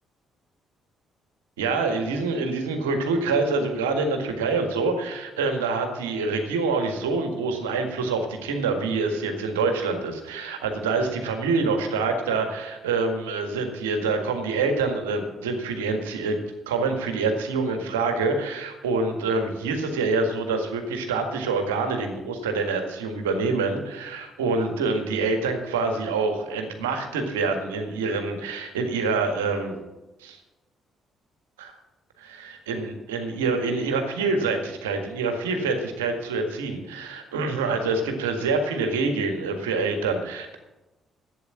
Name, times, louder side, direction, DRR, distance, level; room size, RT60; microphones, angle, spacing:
voice 1, 1.6-16.4 16.7-29.8 30.2-30.4 31.6-31.7 32.4-40.6, right 3 dB, 75° right, 5 dB, 1.8 m, -26 dB
12.0 x 8.7 x 8.5 m, 1.0 s
figure-of-eight pair, 40°, 0 cm